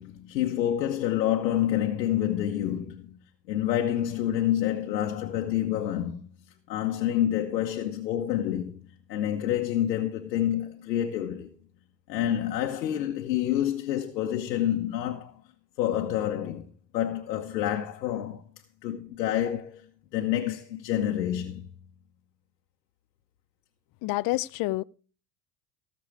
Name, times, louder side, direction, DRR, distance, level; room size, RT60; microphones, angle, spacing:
voice 1, 0.0-3.2 3.5-6.2 6.7-8.8 9.1-11.5 12.1-15.4 15.8-16.6 16.9-18.4 18.8-19.8 20.1-21.7, left 11 dB, 85° left, 1.2 m, -28 dB
voice 2, 24.0-24.8, left 19 dB, 45° left, 0.5 m, -28 dB
16.5 x 6.7 x 4.8 m
hypercardioid pair, 80°, 49 cm